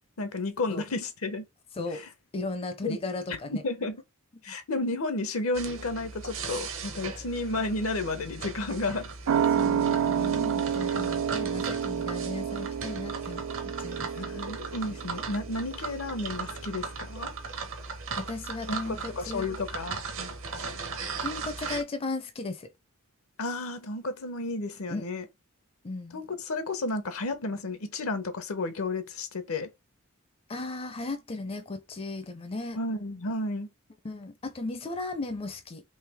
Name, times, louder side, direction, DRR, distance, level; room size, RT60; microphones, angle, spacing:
voice 1, 0.2-1.4 1.9-2.1 2.8-3.0 3.3-4.0 4.4-9.1 14.1-17.3 18.7-20.0 23.4-25.2 26.1-29.7 32.8-33.7, left 2 dB, 80° left, 0.8 m, -32 dB
voice 2, 2.3-3.6 9.5-13.5 13.8-14.1 18.2-19.5 21.2-22.7 24.9-25.1 25.8-26.2 30.5-32.8 34.0-35.8, left 2 dB, 25° left, 0.4 m, -36 dB
sound 1, 5.5-21.8, right 4 dB, 70° right, 0.8 m, -38 dB
sound 2, 9.3-16.3 16.6-16.7, right 8 dB, 85° right, 0.5 m, -29 dB
3.3 x 3.0 x 3.4 m
head